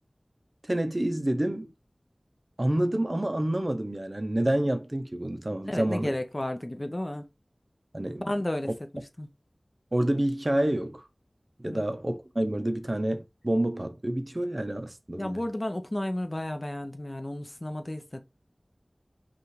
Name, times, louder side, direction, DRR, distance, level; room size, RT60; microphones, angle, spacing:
voice 1, 0.7-1.7 2.6-6.1 7.9-8.2 9.9-11.0 11.6-15.4, right 1 dB, 40° right, 0.6 m, -28 dB
voice 2, 5.7-7.3 8.2-9.3 11.6-11.8 15.2-18.2, left 1 dB, 35° left, 0.6 m, -33 dB
5.5 x 2.4 x 3.2 m
wide cardioid pair, 50°, 0 cm